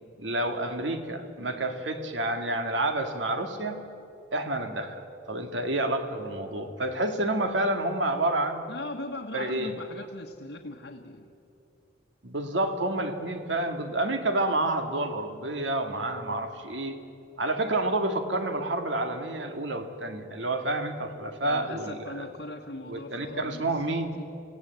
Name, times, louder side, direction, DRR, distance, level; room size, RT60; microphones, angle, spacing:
voice 1, 0.2-3.8 4.3-8.6 9.3-9.7 12.2-17.0 17.4-22.3 22.9-24.1, right 2 dB, 90° right, 6 dB, 2.1 m, -29 dB
voice 2, 8.7-11.3 21.4-24.2, left 2 dB, 80° left, 0 dB, 1.3 m, -40 dB
25.5 x 17.0 x 8.2 m, 2.8 s
head